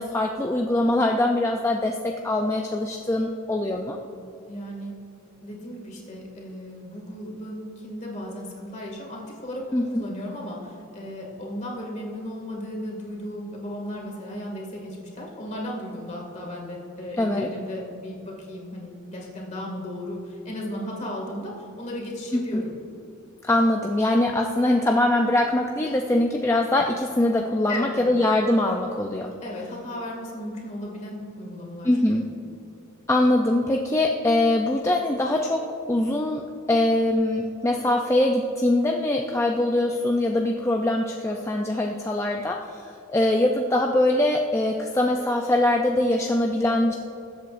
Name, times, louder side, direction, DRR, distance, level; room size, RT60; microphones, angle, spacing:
voice 1, 0.0-4.0 9.7-10.0 17.2-17.5 22.3-22.6 23.4-29.3 31.8-32.3 33.1-46.9, left 1 dB, 15° left, 1 dB, 0.4 m, -23 dB
voice 2, 4.5-5.0 5.4-22.7 27.7-28.2 29.4-32.2, left 1 dB, 35° left, -2 dB, 2.2 m, -35 dB
20.5 x 8.0 x 2.6 m, 2.7 s
head